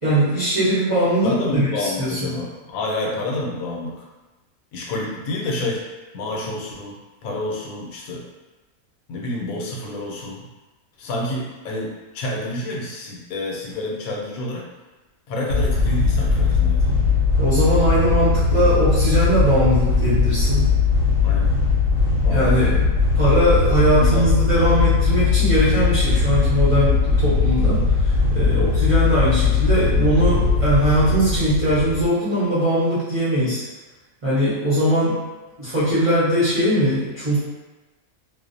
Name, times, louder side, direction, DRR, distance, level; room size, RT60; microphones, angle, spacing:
voice 1, 0.0-2.3 17.4-20.7 22.3-33.6 34.2-35.2 35.6-37.4, right 1 dB, 35° right, -13 dB, 0.6 m, -20 dB
voice 2, 1.2-4.0 4.7-5.8 6.1-8.2 9.1-10.5 11.0-14.7 15.3-17.1 21.2-21.6 22.2-22.7 23.9-24.8 28.4-28.7, left 1 dB, 85° left, -2 dB, 1.0 m, -29 dB
sound 1, 15.5-32.1, left 4 dB, 70° right, 1.0 m, -19 dB
2.5 x 2.0 x 2.5 m, 1.1 s
omnidirectional pair, 1.4 m